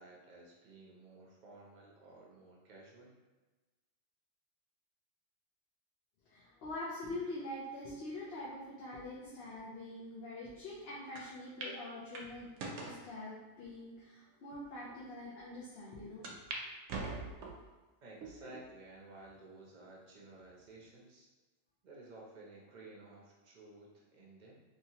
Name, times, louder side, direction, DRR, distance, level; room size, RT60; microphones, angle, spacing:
voice 1, 0.0-3.2 18.0-21.3 21.8-24.6, right 2 dB, 45° right, -2 dB, 0.7 m, -54 dB
voice 2, 6.3-12.5 12.8-16.3 18.4-18.6, left 1 dB, 65° left, -6 dB, 0.8 m, -44 dB
sound 1, 11.2-11.3 11.6-11.8 12.1-13.0 13.7-13.8 14.5-14.6 14.9-15.0 16.2-16.6 16.9-17.7 18.2-18.7 19.2-19.3 20.4-20.9, right 3 dB, 75° right, 0.9 m, -42 dB
2.8 x 2.8 x 2.8 m, 1.2 s
omnidirectional pair, 1.2 m